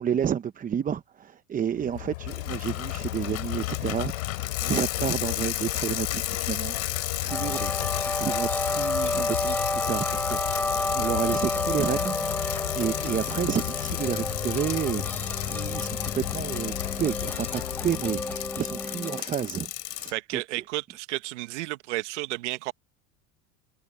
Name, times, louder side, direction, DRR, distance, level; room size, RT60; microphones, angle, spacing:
voice 1, 0.0-6.8 7.2-12.2 12.4-20.6, right 8 dB, 25° right, 0.8 m, -31 dB
Rain, 1.7-19.0, left 19 dB, 85° left, 6.4 m, -35 dB
Bicycle, 2.3-20.1, left 14 dB, 45° left, 4.1 m, -34 dB
sound 1, 7.3-19.2, left 1 dB, 5° left, 7.7 m, -31 dB
voice 2, 20.1-22.7, right 20 dB, 85° right, 1.6 m, -32 dB
supercardioid pair, 120°, 35 cm